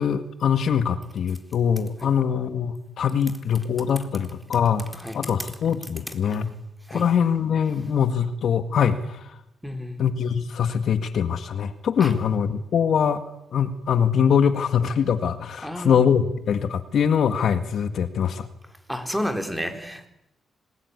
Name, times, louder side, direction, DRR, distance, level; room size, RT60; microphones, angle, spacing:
voice 1, 0.0-6.5 6.9-9.3 10.0-13.2 13.5-18.5, left 7 dB, 65° left, 9 dB, 1.9 m, -23 dB
voice 2, 4.9-5.3 6.1-6.2 6.8-7.1 9.6-10.0 12.0-12.1 15.6-16.0 18.9-20.1, equal, ahead, 6 dB, 4.2 m, -31 dB
26.0 x 21.5 x 9.8 m, 0.86 s
cardioid pair, 105°, 0 cm